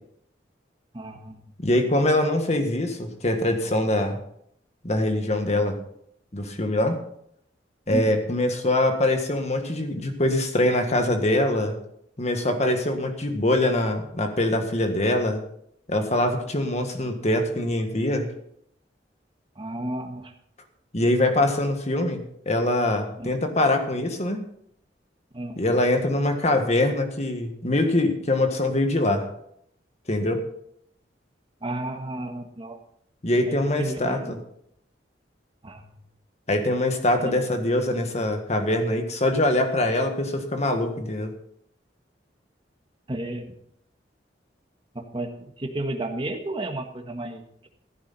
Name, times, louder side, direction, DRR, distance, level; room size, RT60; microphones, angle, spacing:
voice 1, 0.9-1.5 7.9-8.1 19.5-20.3 23.2-23.3 25.3-25.6 31.6-32.8 33.4-34.3 35.6-35.9 37.2-37.3 43.1-43.5 44.9-45.3 45.6-47.7, right 1 dB, 30° right, 4 dB, 1.6 m, -32 dB
voice 2, 1.6-4.2 4.8-5.8 6.3-7.0 7.9-11.8 12.2-15.4 15.9-18.3 20.9-24.4 25.6-29.3 30.1-30.5 33.2-34.4 36.5-41.3, left 1 dB, 40° left, 6 dB, 1.7 m, -23 dB
15.5 x 9.5 x 4.2 m, 0.71 s
head